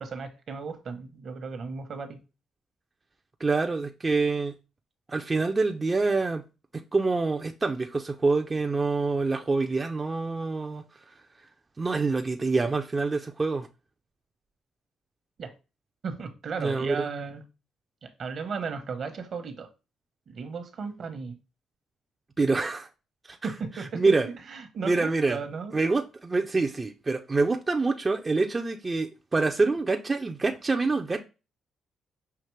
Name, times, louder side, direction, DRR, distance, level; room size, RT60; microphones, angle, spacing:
voice 1, 0.0-2.2 15.4-15.5 16.0-17.5 18.0-19.7 20.3-21.4 23.4-25.7, right 5 dB, 55° right, 1.0 m, -35 dB
voice 2, 3.4-4.6 5.1-6.4 6.7-11.2 11.8-13.7 16.6-17.1 22.4-22.9 23.3-24.3 24.8-25.4 25.7-31.2, right 3 dB, 25° right, 0.5 m, -26 dB
5.8 x 2.9 x 3.2 m
cardioid pair, 90°, 0 cm